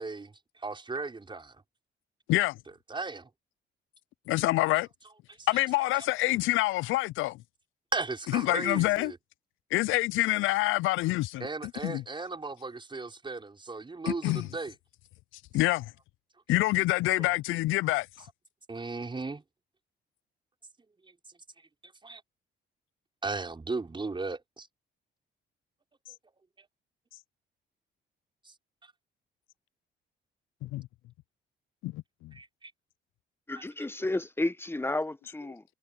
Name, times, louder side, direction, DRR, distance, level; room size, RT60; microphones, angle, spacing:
voice 1, 0.0-1.6 2.9-3.3 5.4-5.5 5.9-6.1 7.9-9.2 11.4-14.7 17.2-17.4 18.7-19.4 21.6-22.2 23.2-24.7 26.6-26.7 28.4-28.5 32.3-32.7, right 3 dB, 25° right, 5.3 m, -36 dB
voice 2, 4.3-4.9 5.5-7.4 8.3-9.1 9.7-11.5 11.8-12.0 14.1-14.5 15.5-15.9 16.5-18.1 30.6-30.9 31.8-32.3, left 18 dB, 85° left, 0.4 m, -26 dB
voice 3, 33.5-35.6, left 2 dB, 10° left, 1.1 m, -32 dB
cardioid pair, 90°, 20 cm